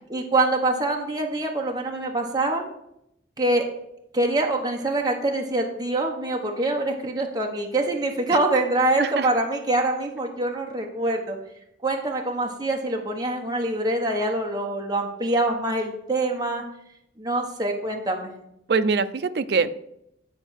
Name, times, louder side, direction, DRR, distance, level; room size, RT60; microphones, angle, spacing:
voice 1, 0.1-2.6 3.4-3.7 4.1-11.4 11.8-16.6 17.2-18.3, right 2 dB, 20° right, 1 dB, 0.9 m, -25 dB
voice 2, 9.0-9.3 18.7-19.9, right 4 dB, 55° right, 11 dB, 0.4 m, -23 dB
9.5 x 4.4 x 6.3 m, 0.80 s
head